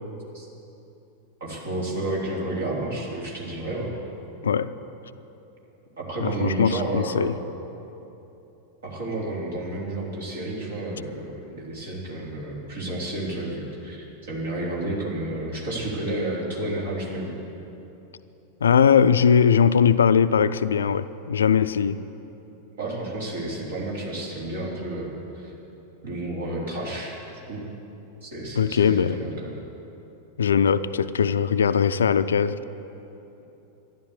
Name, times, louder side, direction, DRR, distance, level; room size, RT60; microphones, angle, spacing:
voice 1, 1.4-3.9 6.0-7.3 8.8-17.3 22.8-25.5 26.0-27.6 28.2-29.6, right 1 dB, 60° right, -3 dB, 3.6 m, -31 dB
voice 2, 6.2-7.3 18.6-22.0 28.5-29.2 30.4-32.6, left 7 dB, 70° left, 13 dB, 0.4 m, -20 dB
13.0 x 11.5 x 8.1 m, 2.9 s
figure-of-eight pair, 90°, 0 cm